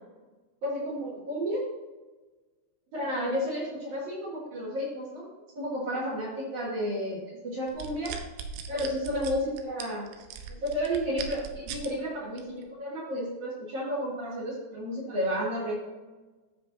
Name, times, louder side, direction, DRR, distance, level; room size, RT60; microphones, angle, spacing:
voice 1, 0.6-1.6 2.9-5.2 5.5-8.1 8.7-10.1 10.6-15.7, equal, 50° right, -7 dB, 3.4 m, -32 dB
sound 1, 7.7-11.9 12.4-12.6, right 7 dB, 85° right, 3.0 m, -39 dB
14.0 x 5.4 x 2.7 m, 1.2 s
omnidirectional pair, 4.9 m